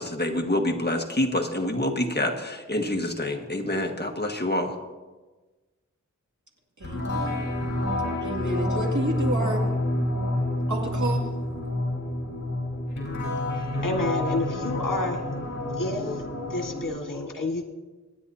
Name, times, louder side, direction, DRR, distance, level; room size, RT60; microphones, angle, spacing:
voice 1, 0.0-4.7, left 1 dB, 30° left, 2 dB, 1.6 m, -27 dB
sound 1, 6.8-16.9, left 1 dB, 60° left, 4.4 m, -28 dB
voice 2, 6.8-7.5 8.2-9.7 10.7-11.3, right 1 dB, 65° right, 1 dB, 2.4 m, -30 dB
voice 3, 13.8-15.2 15.8-16.2 16.5-17.6, left 2 dB, 85° left, 2 dB, 1.8 m, -29 dB
26.0 x 9.9 x 2.8 m, 1.2 s
wide cardioid pair, 65°, 32 cm